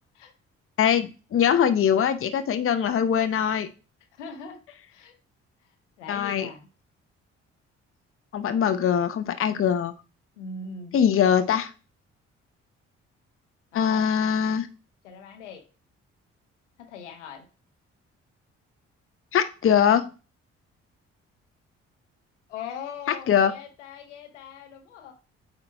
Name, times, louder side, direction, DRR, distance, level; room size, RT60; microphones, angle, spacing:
voice 1, 0.8-3.7 6.1-6.5 8.3-9.9 10.9-11.7 13.7-14.7 19.3-20.1 23.3-23.5, left 8 dB, 40° left, 10 dB, 0.7 m, -22 dB
voice 2, 4.2-4.6 4.9-5.1 5.6-6.7 10.4-11.0 13.7-14.1 15.0-15.6 16.8-17.4 22.5-25.1, left 5 dB, 85° left, 4 dB, 0.9 m, -40 dB
8.5 x 2.9 x 4.6 m, 0.34 s
figure-of-eight pair, 40°, 35 cm